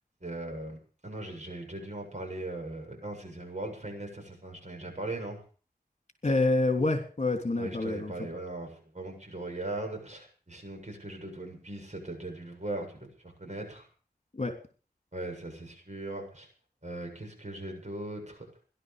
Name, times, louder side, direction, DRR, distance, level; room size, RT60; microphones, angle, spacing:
voice 1, 0.2-5.4 7.5-13.9 15.1-16.5 16.8-18.4, right 2 dB, 45° right, 3 dB, 7.4 m, -39 dB
voice 2, 6.2-8.1 14.3-14.5, left 2 dB, 40° left, 5 dB, 3.3 m, -27 dB
17.5 x 11.5 x 6.8 m, 0.41 s
wide cardioid pair, 50°, 17 cm